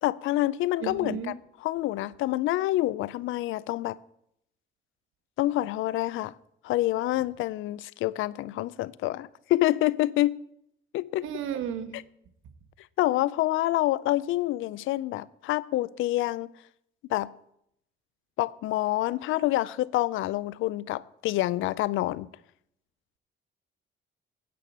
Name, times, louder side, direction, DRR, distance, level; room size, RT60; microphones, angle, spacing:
voice 1, 0.0-1.3 1.6-4.0 5.4-6.3 6.6-10.4 10.9-11.3 11.9-12.0 13.0-16.5 17.1-17.3 18.4-22.3, left 16 dB, 85° left, 0.4 m, -27 dB
voice 2, 0.8-1.3 11.2-12.0, right 9 dB, 90° right, 1.2 m, -33 dB
9.3 x 8.2 x 7.3 m
cardioid pair, 90°, 20 cm